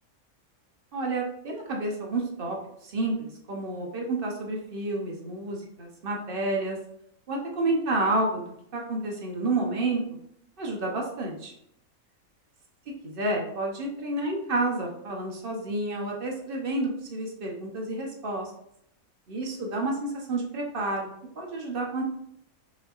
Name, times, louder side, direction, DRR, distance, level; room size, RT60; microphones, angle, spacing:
voice 1, 0.9-2.6 2.8-6.8 7.3-10.0 10.6-11.5 13.0-18.5 19.3-21.1 21.4-22.0, right 2 dB, 50° right, 0 dB, 0.8 m, -30 dB
5.2 x 2.7 x 2.4 m, 0.74 s
omnidirectional pair, 1.5 m